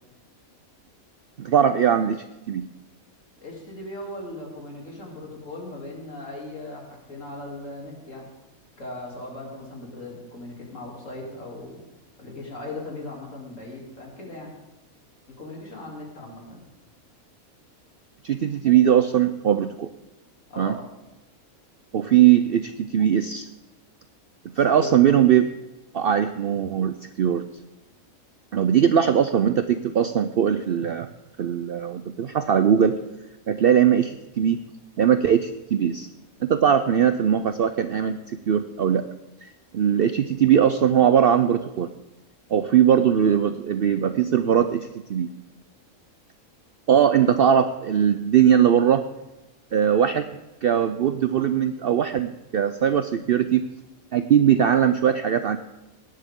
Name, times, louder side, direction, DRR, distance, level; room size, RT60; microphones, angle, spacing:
voice 1, 1.4-2.7 18.2-19.9 20.6-20.7 21.9-23.5 24.6-25.5 25.9-27.4 28.5-31.1 31.4-33.0 33.5-34.6 35.0-36.1 36.4-39.0 39.4-39.5 39.7-41.9 42.5-45.3 46.9-49.0 49.7-53.6 54.1-55.6, right 9 dB, 65° right, 10 dB, 0.6 m, -20 dB
voice 2, 3.4-8.3 8.8-11.8 12.2-14.5 15.4-16.6 20.5-20.8 24.8-25.2, left 2 dB, 60° left, -2 dB, 3.4 m, -38 dB
17.5 x 11.0 x 3.7 m, 1.0 s
omnidirectional pair, 1.5 m